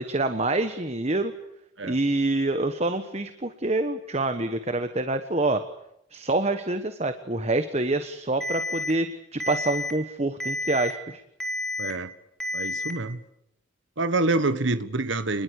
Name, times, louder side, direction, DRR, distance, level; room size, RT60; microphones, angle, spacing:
voice 1, 0.0-1.3 1.8-5.6 6.1-11.2, right 2 dB, 35° right, 9 dB, 1.2 m, -26 dB
Alarm, 8.4-8.9 9.4-9.9 10.4-10.9 11.4-11.9 12.4-12.9, left 2 dB, 5° left, 3.5 m, -30 dB
voice 2, 11.8-12.1 12.5-13.2 14.0-15.4, right 2 dB, 75° right, 12 dB, 1.4 m, -26 dB
28.5 x 21.0 x 8.3 m, 0.81 s
head